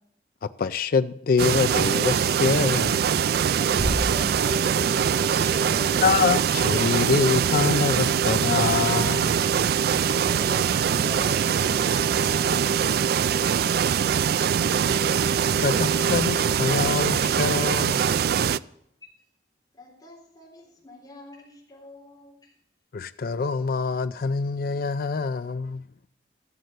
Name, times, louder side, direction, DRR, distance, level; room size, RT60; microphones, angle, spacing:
voice 1, 0.4-3.0 6.0-9.4 15.6-18.1 22.9-25.8, left 5 dB, 55° left, 0.4 m, -25 dB
sound 1, 1.4-18.6, right 7 dB, 60° right, 0.3 m, -23 dB
voice 2, 3.6-6.0 9.7-12.5, right 1 dB, 35° right, 3.3 m, -39 dB
sound 2, 3.8-5.2, equal, 70° left, 2.4 m, -31 dB
voice 3, 19.7-22.6, left 2 dB, 20° left, 3.9 m, -49 dB
13.5 x 7.6 x 6.6 m
head